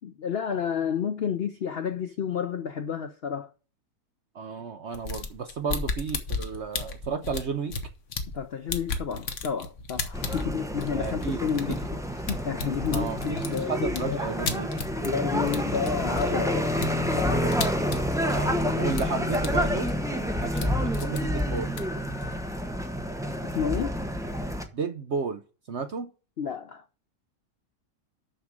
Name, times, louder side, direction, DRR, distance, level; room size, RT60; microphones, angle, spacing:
voice 1, 0.0-3.5 8.3-12.0 12.3-14.2 15.0-16.7 17.1-17.9 23.4-24.0 26.4-26.9, left 7 dB, 85° left, 0.5 m, -30 dB
voice 2, 4.3-7.8 11.0-11.4 12.9-14.7 18.3-21.7 24.7-25.4 25.7-26.1, right 5 dB, 60° right, 0.7 m, -33 dB
sound 1, 4.9-8.4 8.7-15.2 15.5-18.6 18.9-19.5 19.7-20.7 20.9-22.6, left 4 dB, 45° left, 1.3 m, -34 dB
sound 2, 10.1-24.6, equal, 5° right, 0.5 m, -29 dB
6.9 x 6.3 x 7.2 m
omnidirectional pair, 1.9 m